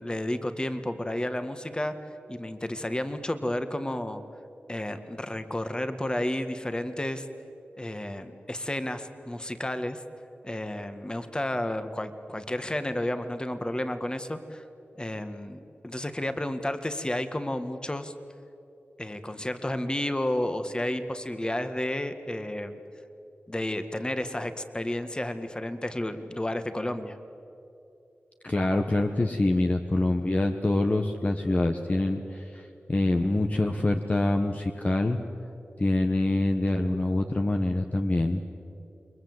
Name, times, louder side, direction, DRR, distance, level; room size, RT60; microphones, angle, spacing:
voice 1, 0.0-1.9 2.3-4.2 4.7-7.2 7.8-10.0 10.4-14.6 15.0-18.1 19.0-22.7 23.5-27.2, left 1 dB, 20° left, 9 dB, 1.8 m, -31 dB
voice 2, 28.4-35.2 35.8-38.4, left 2 dB, 35° left, 4 dB, 1.3 m, -25 dB
28.5 x 22.5 x 8.1 m, 2.7 s
wide cardioid pair, 60°, 4 cm